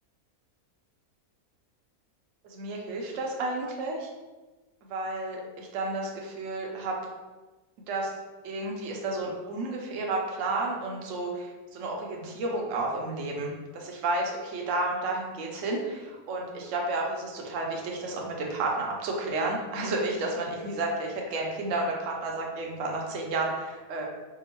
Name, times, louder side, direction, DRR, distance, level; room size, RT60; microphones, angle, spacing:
voice 1, 2.4-4.1 4.8-7.0 7.9-8.1 8.4-24.1, right 2 dB, 65° right, 0 dB, 0.8 m, -31 dB
3.6 x 2.0 x 2.9 m, 1.2 s
omnidirectional pair, 1.6 m